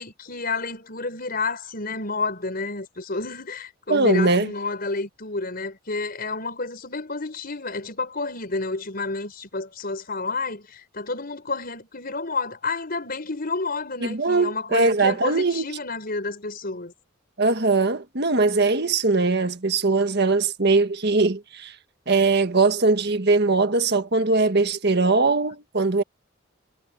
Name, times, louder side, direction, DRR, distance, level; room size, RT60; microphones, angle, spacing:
voice 1, 0.0-16.9, left 3 dB, 50° left, 5.2 m, -30 dB
voice 2, 3.9-4.5 14.0-15.7 17.4-21.7 22.1-26.0, right 3 dB, 55° right, 1.6 m, -21 dB
head